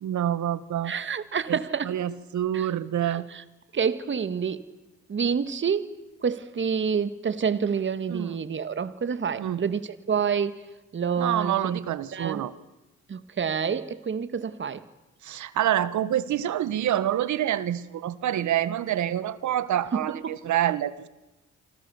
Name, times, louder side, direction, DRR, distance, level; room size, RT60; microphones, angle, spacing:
voice 1, 0.0-0.9 1.5-1.6 1.8-3.3 8.1-8.3 9.4-9.6 11.2-12.5 15.2-21.1, right 11 dB, 70° right, 1.4 m, -27 dB
voice 2, 0.8-1.9 2.5-2.7 3.0-3.4 3.7-4.6 5.1-5.9 6.2-10.6 10.9-11.8 12.1-12.4 13.1-14.8 19.9-20.4, right 6 dB, 40° right, 1.8 m, -28 dB
29.0 x 24.5 x 7.1 m
cardioid pair, 90°, 30 cm